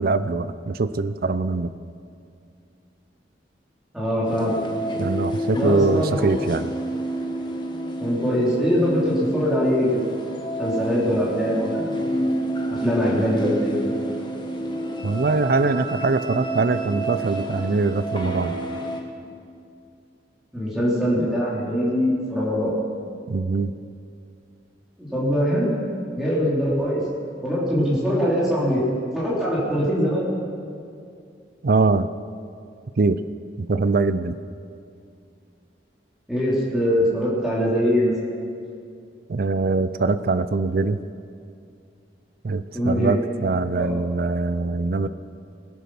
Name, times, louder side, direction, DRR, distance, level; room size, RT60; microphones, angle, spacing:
voice 1, 0.0-1.7 5.0-6.7 15.0-18.5 23.3-23.7 31.6-32.1 33.0-33.2 33.6-34.4 39.3-41.0 42.4-45.1, right 3 dB, 55° right, 12 dB, 0.4 m, -22 dB
voice 2, 3.9-4.6 5.5-6.3 8.0-10.0 10.6-11.9 12.8-13.8 20.5-22.7 25.0-25.7 26.1-27.0 27.4-28.8 29.1-30.3 36.3-38.1 42.7-43.2 43.8-44.0, equal, ahead, -8 dB, 3.0 m, -22 dB
sound 1, 4.3-19.0, right 1 dB, 25° left, 1.3 m, -29 dB
21.5 x 8.4 x 6.1 m, 2.4 s
head